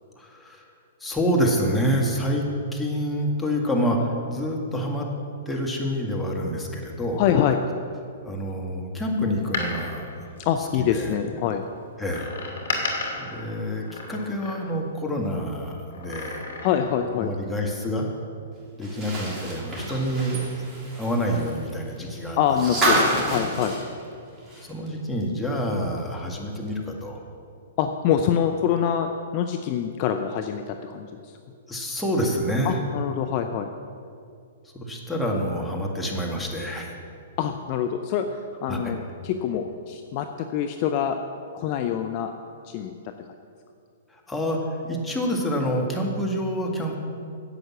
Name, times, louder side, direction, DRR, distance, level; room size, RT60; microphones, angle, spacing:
voice 1, 0.2-0.6 1.0-2.4 2.7-5.1 5.5-7.2 8.3-10.1 10.9-11.1 12.0-12.3 13.2-16.4 17.2-18.1 18.8-20.4 21.0-22.4 23.1-23.2 24.6-27.2 31.7-32.8 34.7-36.9 38.7-38.9 44.3-44.6 44.8-46.9, equal, 5° left, -1 dB, 2.0 m, -27 dB
voice 2, 7.1-7.6 10.4-11.6 16.6-17.4 22.4-23.8 27.8-31.3 32.6-33.7 37.4-41.2 41.5-42.3 42.6-42.9, left 9 dB, 40° left, 6 dB, 0.6 m, -25 dB
Door, 9.3-11.1 12.1-15.0 15.9-17.0 17.3-17.4, left 3 dB, 65° left, 2.3 m, -34 dB
sound 1, 18.8-24.9 25.2-25.3 26.7-26.8, right 1 dB, 15° right, 3.6 m, -28 dB
11.0 x 7.8 x 7.3 m, 2.4 s
figure-of-eight pair, 115°, 0 cm